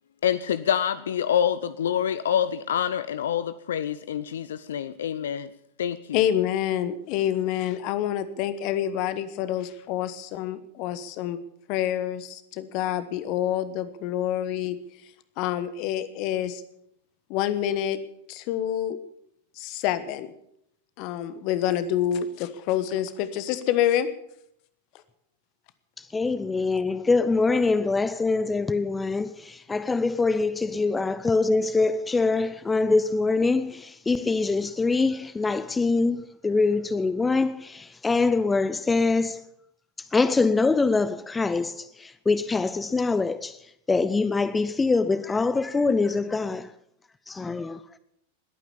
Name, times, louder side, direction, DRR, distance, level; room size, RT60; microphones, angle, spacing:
voice 1, 0.2-5.5 5.8-6.2, left 9 dB, 60° left, 0.5 m, -26 dB
voice 2, 6.1-11.4 11.7-14.8 15.4-16.6 17.3-18.0 18.3-19.0 19.6-20.3 21.0-24.1, left 11 dB, 45° left, 1.3 m, -27 dB
voice 3, 26.0-39.4 40.1-43.6 43.9-46.7 47.3-47.8, left 3 dB, 10° left, 0.6 m, -24 dB
20.5 x 9.2 x 7.1 m
figure-of-eight pair, 90°, 0 cm